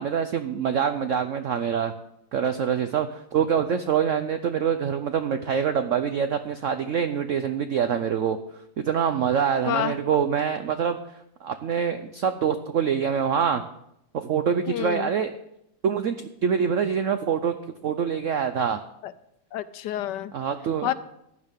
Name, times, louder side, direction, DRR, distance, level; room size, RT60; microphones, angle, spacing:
voice 1, 0.0-1.9 2.3-8.4 8.8-11.0 11.4-13.6 14.1-15.3 15.8-17.5 17.8-18.8 20.3-20.9, right 7 dB, 75° right, 9 dB, 0.7 m, -25 dB
voice 2, 14.7-15.1 19.0-19.1 19.5-20.3 20.8-20.9, left 11 dB, 75° left, 14 dB, 1.1 m, -28 dB
15.0 x 10.5 x 3.6 m, 0.78 s
omnidirectional pair, 2.1 m